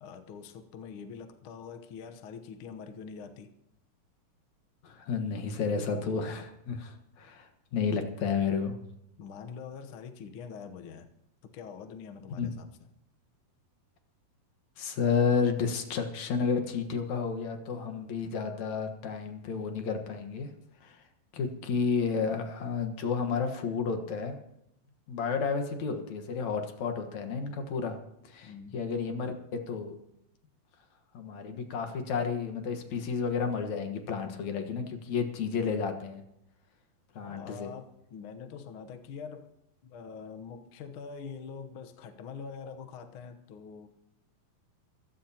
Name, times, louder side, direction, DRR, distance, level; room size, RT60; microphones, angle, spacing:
voice 1, 0.0-3.5 9.2-11.1 11.4-12.7 28.4-28.8 37.2-39.5 39.8-43.9, left 6 dB, 80° left, 1.2 m, -44 dB
voice 2, 4.8-8.8 12.4-12.5 14.8-20.5 20.8-21.0 21.3-24.4 25.1-28.0 28.2-29.3 29.7-30.0 31.1-36.2 37.2-37.7, left 5 dB, 60° left, 2.5 m, -31 dB
25.0 x 15.5 x 2.9 m
omnidirectional pair, 4.0 m